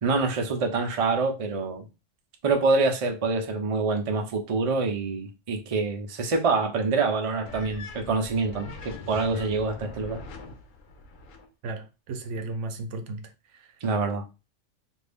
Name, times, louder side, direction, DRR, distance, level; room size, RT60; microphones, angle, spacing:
voice 1, 0.0-1.9 2.4-10.2 13.8-14.2, right 3 dB, 45° right, 0.4 m, -26 dB
sound 1, 7.4-11.5, left 3 dB, 85° left, 1.1 m, -42 dB
voice 2, 11.6-13.7, right 2 dB, 70° right, 0.9 m, -35 dB
2.6 x 2.5 x 3.4 m
omnidirectional pair, 1.3 m